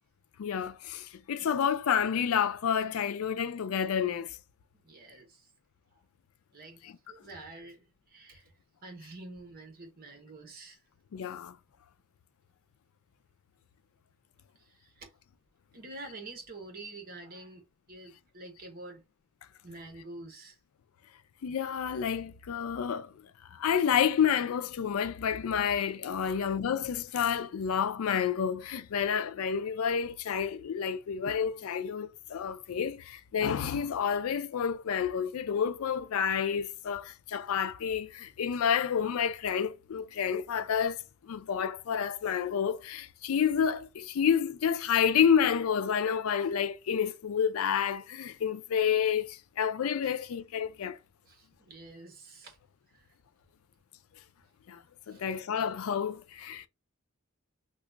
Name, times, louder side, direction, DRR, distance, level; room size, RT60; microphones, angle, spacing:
voice 1, 0.4-4.4 11.1-11.6 21.4-23.3 23.5-51.0 54.7-54.8 55.1-56.7, left 7 dB, 85° left, 0.4 m, -29 dB
voice 2, 4.7-5.5 5.9-6.0 6.5-6.8 7.1-8.5 8.8-10.8 14.5-15.1 15.7-19.0 19.6-20.6 22.4-22.5 26.2-26.4 51.2-52.6 52.9-53.2 55.1-55.2, right 2 dB, 45° right, 1.1 m, -47 dB
3.0 x 2.3 x 3.7 m
head